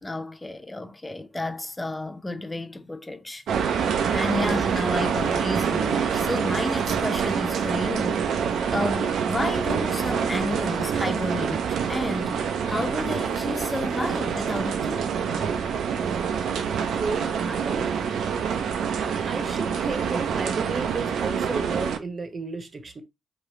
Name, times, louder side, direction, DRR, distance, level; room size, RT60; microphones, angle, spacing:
voice 1, 0.0-11.6 11.9-15.1, left 1 dB, 15° left, 0.7 m, -31 dB
sound 1, 3.5-22.0, right 7 dB, 65° right, 0.6 m, -26 dB
voice 2, 16.9-17.8 19.0-23.0, right 3 dB, 40° right, 1.0 m, -33 dB
4.5 x 3.2 x 3.0 m
hypercardioid pair, 40°, 0 cm